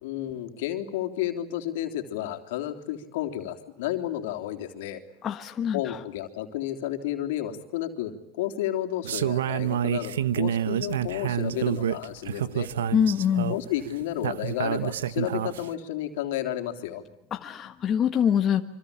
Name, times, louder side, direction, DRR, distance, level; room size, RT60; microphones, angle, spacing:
voice 1, 0.0-5.0 5.7-12.7 13.5-17.0, left 12 dB, 75° left, 4 dB, 3.5 m, -32 dB
voice 2, 5.2-6.0 12.9-13.5 17.3-18.6, left 8 dB, 35° left, 6 dB, 1.5 m, -24 dB
sound 1, 9.0-15.7, right 10 dB, 90° right, 0.9 m, -28 dB
26.0 x 25.5 x 8.6 m, 0.85 s
hypercardioid pair, 105°, 0 cm